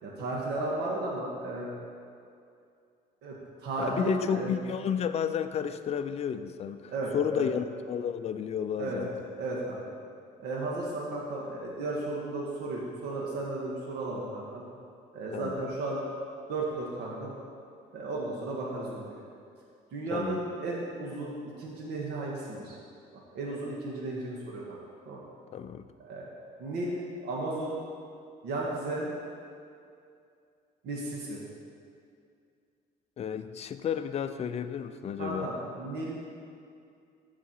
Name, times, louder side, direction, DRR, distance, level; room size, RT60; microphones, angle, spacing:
voice 1, 0.0-1.7 3.2-4.5 6.9-7.5 8.8-9.8 10.4-14.6 15.1-16.0 16.5-17.3 17.9-19.2 19.9-22.8 23.1-24.8 25.0-25.2 26.0-26.3 26.6-27.8 28.4-29.1 30.8-31.4 35.2-36.2, right 2 dB, 80° right, -3 dB, 1.6 m, -34 dB
voice 2, 3.9-9.1 15.3-15.7 20.1-20.4 25.5-25.9 33.2-35.5, left 7 dB, 40° left, 9 dB, 0.5 m, -32 dB
14.0 x 4.9 x 4.5 m, 2.4 s
cardioid pair, 110°, 17 cm